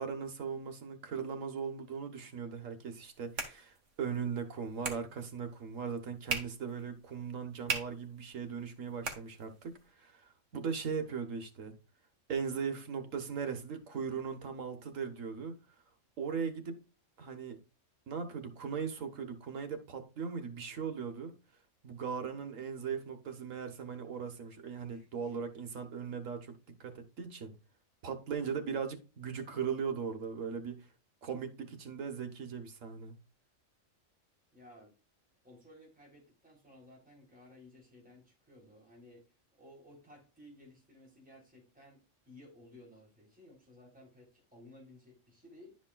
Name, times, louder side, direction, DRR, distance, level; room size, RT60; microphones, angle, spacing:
voice 1, 0.0-11.7 12.3-15.6 16.2-16.8 17.2-17.6 18.1-21.3 21.8-27.6 28.0-30.9 31.2-33.1, right 6 dB, 85° right, 1.6 m, -39 dB
sound 1, 2.8-9.9, right 4 dB, 70° right, 1.8 m, -43 dB
voice 2, 24.9-25.4 34.5-34.9 35.4-39.2 39.5-45.8, left 1 dB, 5° right, 3.2 m, -57 dB
11.0 x 5.1 x 2.3 m
omnidirectional pair, 1.3 m